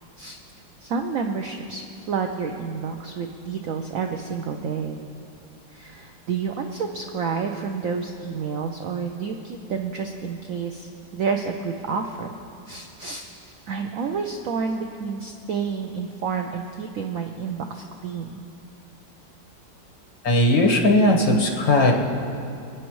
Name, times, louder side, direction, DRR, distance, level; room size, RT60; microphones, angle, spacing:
voice 1, 0.8-5.0 5.7-12.3 12.7-13.2 13.7-18.4, right 5 dB, 80° right, 4 dB, 0.7 m, -29 dB
voice 2, 20.2-21.9, left 1 dB, 75° left, -1 dB, 2.2 m, -18 dB
27.0 x 9.4 x 3.1 m, 2.6 s
omnidirectional pair, 2.1 m